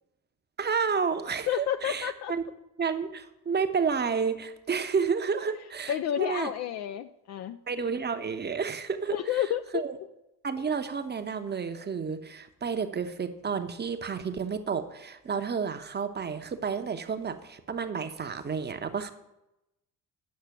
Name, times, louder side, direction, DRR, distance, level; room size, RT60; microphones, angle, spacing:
voice 1, 0.6-2.4 2.8-6.5 7.7-9.4 9.7-10.0 10.4-19.1, right 5 dB, 20° right, 9 dB, 0.8 m, -31 dB
voice 2, 1.5-2.3 5.9-7.6 9.1-9.8, left 10 dB, 40° left, 10 dB, 0.4 m, -30 dB
9.5 x 6.6 x 5.8 m, 0.91 s
figure-of-eight pair, 50°, 46 cm